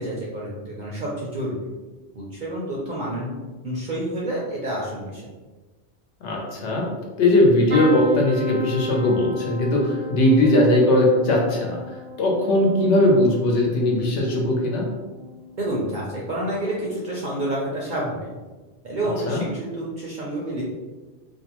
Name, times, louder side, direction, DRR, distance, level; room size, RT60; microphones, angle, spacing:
voice 1, 0.0-1.6 2.2-3.3 3.6-5.2 15.6-18.3 18.8-20.6, right 1 dB, 60° right, -4 dB, 0.5 m, -29 dB
voice 2, 6.2-6.8 7.2-11.8 12.2-14.9 19.3-19.4, left 1 dB, 75° left, -1 dB, 1.0 m, -19 dB
sound 1, 7.7-15.5 16.0-16.5 17.8-18.0 18.2-18.3, left 1 dB, 85° right, 1.1 m, -34 dB
2.6 x 2.1 x 2.9 m, 1.2 s
omnidirectional pair, 1.2 m